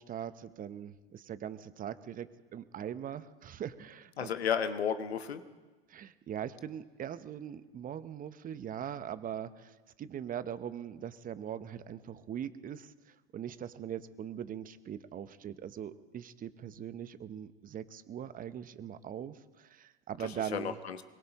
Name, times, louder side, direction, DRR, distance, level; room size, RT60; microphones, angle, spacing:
voice 1, 0.0-4.3 5.9-20.8, right 9 dB, 25° right, 13 dB, 0.9 m, -41 dB
voice 2, 4.2-5.4 20.2-21.0, left 7 dB, 80° left, 10 dB, 1.2 m, -33 dB
22.0 x 21.5 x 3.0 m, 1.3 s
hypercardioid pair, 90°, 31 cm